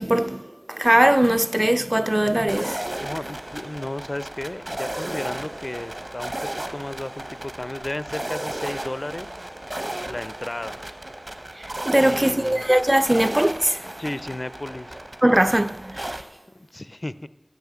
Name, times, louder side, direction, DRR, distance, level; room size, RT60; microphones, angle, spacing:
voice 1, 0.0-2.9 11.6-13.8 15.2-16.2, right 1 dB, 25° right, 0.3 m, -20 dB
sound 1, 2.5-16.2, right 1 dB, 45° right, 0.8 m, -34 dB
voice 2, 3.0-9.3 10.0-10.9 11.9-12.6 14.0-15.0 16.5-17.3, left 1 dB, 50° left, 0.4 m, -34 dB
10.5 x 6.2 x 8.6 m
wide cardioid pair, 40°, 0 cm